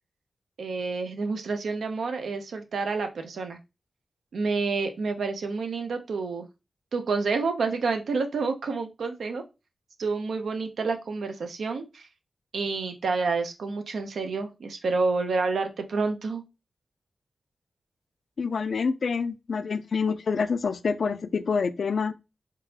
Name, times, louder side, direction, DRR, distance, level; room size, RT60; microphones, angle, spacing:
voice 1, 0.6-3.6 4.3-6.5 6.9-9.4 10.0-12.1 12.5-16.4, right 4 dB, 85° right, 0.6 m, -29 dB
voice 2, 18.4-22.1, left 5 dB, 60° left, 0.3 m, -27 dB
3.9 x 3.7 x 2.8 m
wide cardioid pair, 150°, 0 cm